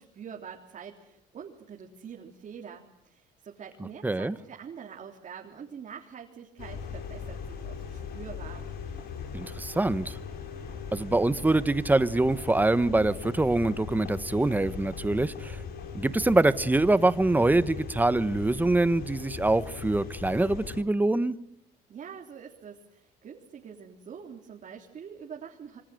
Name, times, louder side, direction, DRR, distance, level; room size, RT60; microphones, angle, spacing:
voice 1, 0.0-8.7 21.9-25.8, right 7 dB, 45° right, 0 dB, 3.6 m, -45 dB
voice 2, 4.0-4.4 9.3-10.2 10.9-15.6 15.9-21.4, right 2 dB, 10° right, 14 dB, 1.2 m, -24 dB
sound 1, 6.6-20.8, left 6 dB, 65° left, 4.8 m, -39 dB
27.5 x 25.0 x 7.8 m, 0.74 s
cardioid pair, 110°, 17 cm